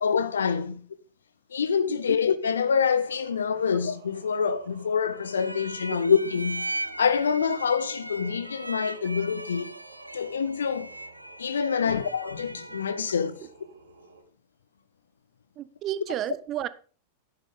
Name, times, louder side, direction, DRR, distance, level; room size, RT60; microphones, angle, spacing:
voice 1, 0.0-0.9 1.5-6.7 7.0-9.7 10.1-10.9 11.4-13.4, left 6 dB, 70° left, 1.0 m, -26 dB
Singing, 3.0-14.2, right 4 dB, 70° right, 2.7 m, -52 dB
sound 1, 5.2-13.3, right 1 dB, 85° right, 0.6 m, -39 dB
voice 2, 15.6-16.7, right 11 dB, 35° right, 0.8 m, -32 dB
12.5 x 10.5 x 3.9 m
figure-of-eight pair, 90°, 0 cm